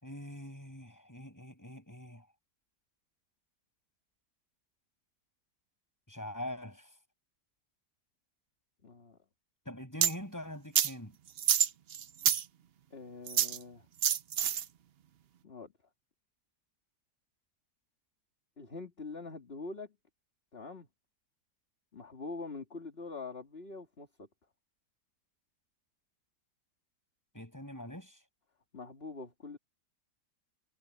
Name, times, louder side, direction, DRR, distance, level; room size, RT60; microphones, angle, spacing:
voice 1, 0.0-2.3 6.1-7.0 9.6-11.2 27.3-28.2, left 1 dB, 10° left, 6.4 m, -43 dB
voice 2, 8.8-9.2 12.9-13.9 15.4-15.7 18.6-19.9 20.5-20.9 21.9-24.3 28.7-29.6, left 3 dB, 35° left, 2.7 m, -44 dB
sound 1, 10.0-10.1 10.8-10.9 11.4-12.4 13.3-13.6 14.0-14.6, right 9 dB, 75° right, 0.5 m, -27 dB
omnidirectional pair, 1.9 m